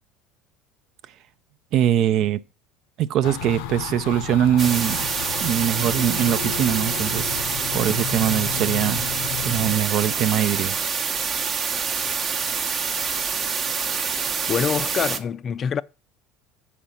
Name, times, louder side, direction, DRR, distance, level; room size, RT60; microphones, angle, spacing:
voice 1, 1.7-2.4 3.0-5.1 5.4-7.4 7.7-9.0 9.4-10.8, right 10 dB, 55° right, 0.5 m, -22 dB
sound 1, 3.2-9.8, left 10 dB, 80° left, 0.7 m, -33 dB
sound 2, 4.6-15.2, right 6 dB, 40° right, 0.9 m, -26 dB
voice 2, 14.5-15.8, left 7 dB, 35° left, 0.4 m, -25 dB
7.1 x 5.1 x 5.7 m
supercardioid pair, 100°, 0 cm